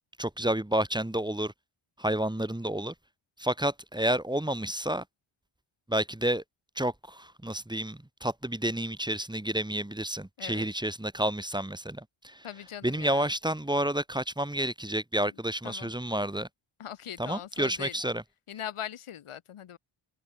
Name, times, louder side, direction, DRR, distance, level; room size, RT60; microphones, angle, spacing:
voice 1, 0.2-1.5 2.0-2.9 3.4-5.0 5.9-6.4 6.8-12.5 12.8-16.5 17.2-18.2, right 1 dB, 10° right, 2.2 m, -30 dB
voice 2, 12.4-13.3 15.6-15.9 16.8-18.0 18.5-19.8, left 10 dB, 80° left, 3.6 m, -40 dB
cardioid pair, 70°, 50 cm